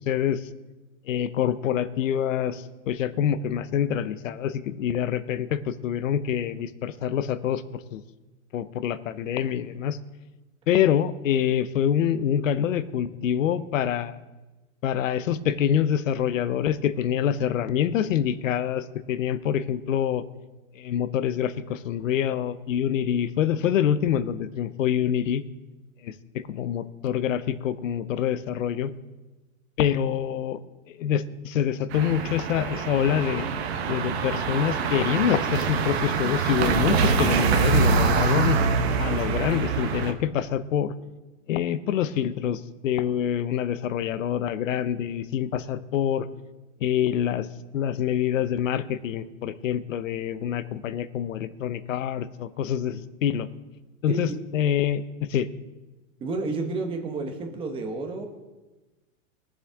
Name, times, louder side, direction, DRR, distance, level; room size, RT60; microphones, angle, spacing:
voice 1, 0.1-0.4 1.1-8.0 8.5-10.0 10.7-14.2 14.8-20.2 20.8-25.4 26.0-28.9 29.8-30.6 30.9-33.4 33.9-38.6 39.0-40.9 41.5-46.3 46.8-47.5 47.7-53.5 54.0-55.5, left 9 dB, 70° left, 14 dB, 0.9 m, -26 dB
sound 1, 31.9-40.1, right 5 dB, 50° right, 1.4 m, -24 dB
voice 2, 56.2-58.3, right 3 dB, 15° right, 4 dB, 1.2 m, -30 dB
22.0 x 7.5 x 3.6 m, 1.1 s
supercardioid pair, 165°, 40 cm